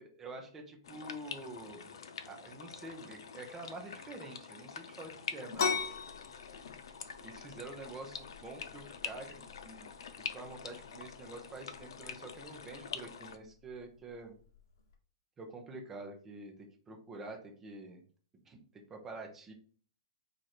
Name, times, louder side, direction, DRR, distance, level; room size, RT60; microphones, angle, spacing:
voice 1, 0.0-1.9 2.3-6.0 7.2-9.9 10.3-14.4 15.4-18.0 18.4-19.5, right 2 dB, 10° right, 2 dB, 0.7 m, -47 dB
sound 1, 0.8-13.4, left 6 dB, 75° left, 0.6 m, -46 dB
sound 2, 5.5-14.9, left 5 dB, 45° left, 1.0 m, -42 dB
4.6 x 2.6 x 4.3 m, 0.44 s
hypercardioid pair, 175°, 3 cm